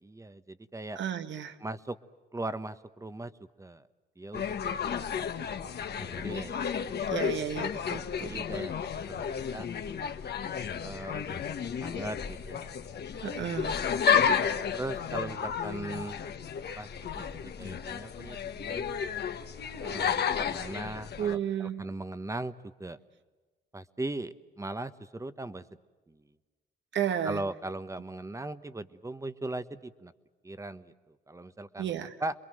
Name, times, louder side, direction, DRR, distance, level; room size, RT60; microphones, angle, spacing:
voice 1, 0.0-1.0 1.6-2.0 2.3-3.3 3.6-3.8 4.2-4.9 5.6-6.5 6.8-7.1 8.1-8.7 9.0-9.7 10.8-11.4 11.8-12.8 13.3-13.7 14.7-16.2 16.8-16.9 17.1-17.2 17.6-18.9 19.8-22.5 22.8-23.0 23.7-25.6 26.1-26.2 27.2-30.1 30.4-30.9 31.3-31.9 32.2-32.3, right 2 dB, 15° right, 13 dB, 1.2 m, -39 dB
voice 2, 1.0-1.5 7.1-8.7 13.2-13.8 21.2-21.9 26.9-27.4 31.8-32.1, right 9 dB, 65° right, 9 dB, 1.5 m, -33 dB
sound 1, 4.3-21.4, left 7 dB, 55° left, 1.6 m, -32 dB
27.5 x 22.5 x 7.8 m, 1.3 s
cardioid pair, 90°, 20 cm